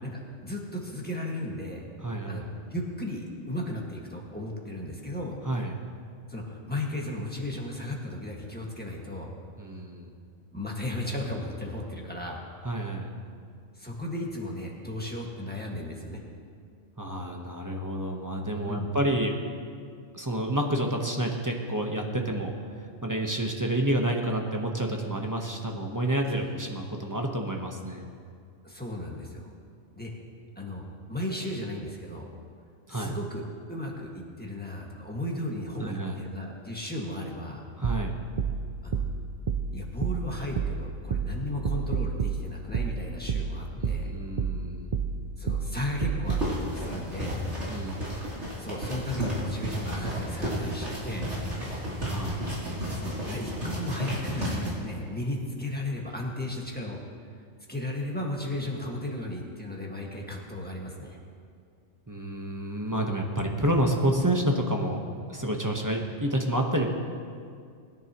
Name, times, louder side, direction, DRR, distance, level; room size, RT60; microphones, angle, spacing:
voice 1, 0.0-1.8 2.3-2.4 2.7-5.4 6.3-9.3 10.5-12.4 13.7-16.2 18.7-18.9 26.3-26.5 28.6-29.5 29.9-30.1 30.5-32.3 32.9-37.6 38.8-39.0 39.7-44.1 45.4-47.4 48.6-51.3 52.9-57.0 57.7-61.2, left 1 dB, 10° left, -2 dB, 1.7 m, -35 dB
voice 2, 2.0-2.5 5.4-5.8 9.6-10.1 12.6-13.1 17.0-19.3 20.1-22.5 23.0-28.1 32.9-33.2 35.8-36.2 37.8-38.1 43.8-44.9 47.7-48.1 52.0-52.4 62.1-65.0 65.3-66.9, right 1 dB, 15° right, 1 dB, 1.0 m, -29 dB
sound 1, 37.8-46.6, right 6 dB, 50° right, 0.4 m, -30 dB
sound 2, 46.3-54.7, equal, 70° right, 3.4 m, -33 dB
21.0 x 10.5 x 3.0 m, 2.2 s
omnidirectional pair, 1.3 m